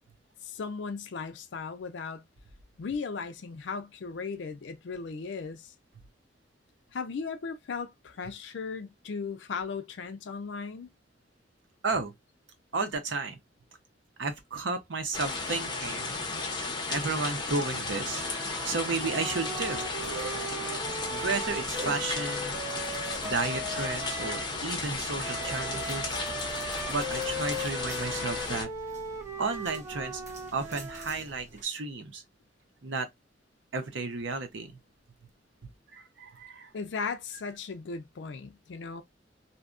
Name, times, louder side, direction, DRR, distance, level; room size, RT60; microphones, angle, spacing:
voice 1, 0.4-2.2 2.8-5.7 6.9-10.9 36.7-39.0, left 5 dB, 70° left, 0.4 m, -37 dB
voice 2, 12.7-13.4 14.2-16.2 16.9-18.3 18.6-19.8 21.1-22.6 23.2-26.1 26.9-28.7 29.4-30.2 30.5-32.2 32.8-33.1 33.7-34.8 35.9-36.7, right 3 dB, 85° right, 0.7 m, -33 dB
sound 1, 15.1-28.6, left 3 dB, 25° left, 0.7 m, -34 dB
Wind instrument woodwind instrument, 18.1-24.5 25.2-31.3, right 1 dB, 15° right, 0.5 m, -38 dB
sound 2, 19.5-31.6, right 2 dB, 40° right, 0.9 m, -48 dB
2.7 x 2.2 x 2.4 m
head